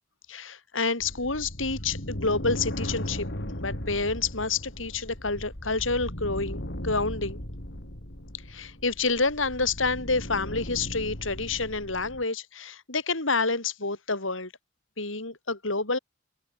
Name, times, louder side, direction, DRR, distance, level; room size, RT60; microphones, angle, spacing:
voice 1, 0.3-3.3 3.5-7.4 8.5-14.5 15.0-16.0, left 3 dB, 80° left, 5.8 m, -28 dB
sound 1, 1.0-12.2, left 1 dB, 60° left, 5.5 m, -37 dB
open air
head